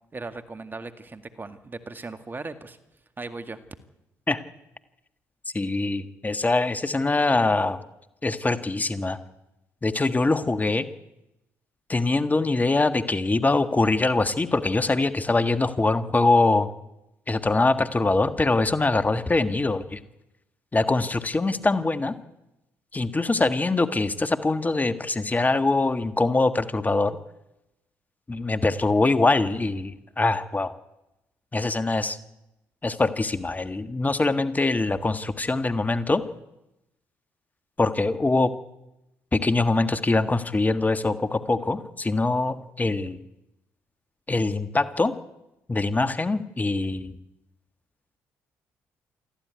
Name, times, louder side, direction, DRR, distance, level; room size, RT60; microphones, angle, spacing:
voice 1, 0.1-2.8 3.2-3.6, right 3 dB, 30° right, 10 dB, 2.0 m, -37 dB
voice 2, 5.5-7.8 8.2-9.2 9.8-10.8 11.9-16.7 17.3-20.0 20.7-22.1 22.9-27.2 28.3-30.7 31.5-32.2 32.8-36.2 37.8-38.5 39.3-43.2 44.3-45.1 45.7-47.1, left 3 dB, 25° left, 10 dB, 1.6 m, -23 dB
23.5 x 14.5 x 9.6 m, 0.91 s
hypercardioid pair, 55°, 7 cm